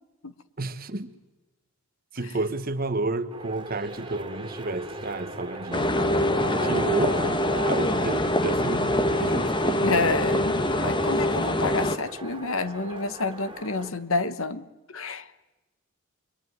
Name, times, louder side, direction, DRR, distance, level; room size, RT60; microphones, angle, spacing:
voice 1, 0.6-1.1 2.1-7.4 7.6-9.9, right 2 dB, 40° right, 1.4 m, -31 dB
sound 1, 3.3-13.9, right 3 dB, 25° right, 2.5 m, -38 dB
sound 2, 5.7-12.0, left 1 dB, 20° left, 1.2 m, -24 dB
voice 2, 9.8-15.3, left 3 dB, 65° left, 1.3 m, -29 dB
27.0 x 23.5 x 9.5 m
head